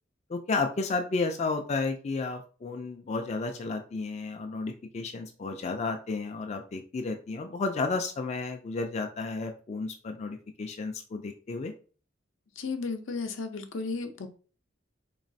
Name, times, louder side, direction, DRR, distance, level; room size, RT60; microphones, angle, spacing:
voice 1, 0.3-11.7, left 3 dB, 35° left, 0.3 m, -32 dB
voice 2, 12.6-14.3, left 4 dB, 80° left, 0.6 m, -34 dB
3.9 x 3.0 x 2.7 m
head